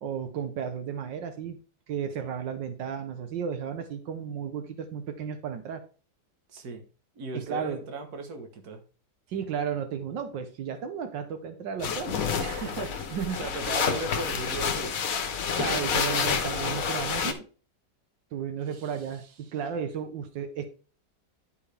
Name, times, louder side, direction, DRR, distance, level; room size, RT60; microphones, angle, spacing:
voice 1, 0.0-1.6 1.9-5.8 7.3-7.8 9.3-12.2 13.1-13.4 15.6-17.4 18.3-20.6, right 7 dB, 85° right, 1.6 m, -33 dB
voice 2, 6.5-6.8 7.1-8.8 12.4-14.9 18.7-19.1, right 2 dB, 60° right, 1.7 m, -37 dB
sound 1, 11.8-17.3, left 6 dB, 60° left, 1.2 m, -29 dB
11.0 x 4.9 x 3.4 m
omnidirectional pair, 1.9 m